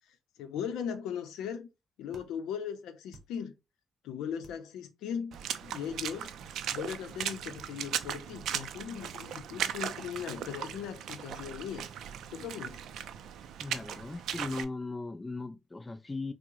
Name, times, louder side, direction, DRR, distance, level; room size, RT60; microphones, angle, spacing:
voice 1, 0.1-1.7 2.0-3.5 4.0-5.4 5.6-6.3 6.7-11.9 12.3-12.8, left 8 dB, 85° left, 0.5 m, -38 dB
sound 1, 2.1-2.3 3.1-3.3 4.4-4.6 5.3-5.5 6.4-6.6 7.6-7.7 8.0-8.2, right 3 dB, 40° right, 0.8 m, -52 dB
Water / Splash splatter, 5.3-14.6, right 9 dB, 75° right, 0.3 m, -38 dB
voice 2, 13.6-16.3, left 3 dB, 20° left, 0.3 m, -38 dB
3.5 x 2.0 x 2.9 m
cardioid pair, 90°, 0 cm